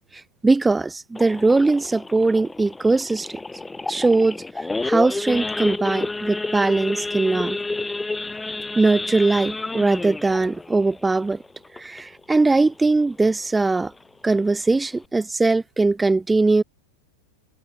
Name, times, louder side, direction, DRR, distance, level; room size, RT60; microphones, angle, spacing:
voice 1, 0.4-3.3 3.9-4.4 4.8-7.6 8.8-11.4 11.8-13.9 14.2-16.6, right 3 dB, 10° right, 1.4 m, -20 dB
Idling / Accelerating revving vroom / Sawing, 1.2-12.2 12.6-12.8 13.1-13.2 13.7-13.9 14.4-14.5 14.7-15.1, left 3 dB, 10° left, 2.6 m, -30 dB
figure-of-eight pair, 90°, 0 cm